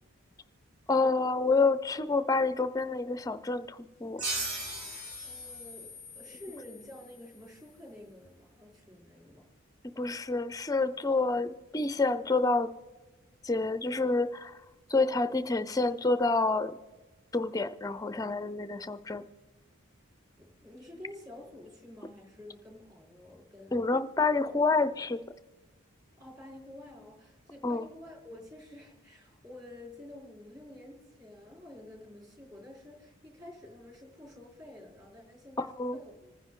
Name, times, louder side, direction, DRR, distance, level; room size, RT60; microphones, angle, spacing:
voice 1, 0.9-4.2 10.0-12.7 13.4-14.5 14.9-16.8 17.3-19.2 23.7-25.2 27.6-27.8 35.6-36.0, left 3 dB, 15° left, 12 dB, 0.5 m, -28 dB
sound 1, 4.2-7.4, right 1 dB, 80° right, 4.1 m, -39 dB
voice 2, 5.2-9.4 20.4-23.9 26.2-36.3, left 1 dB, 20° right, -3 dB, 4.3 m, -50 dB
27.0 x 9.8 x 3.8 m, 1.2 s
head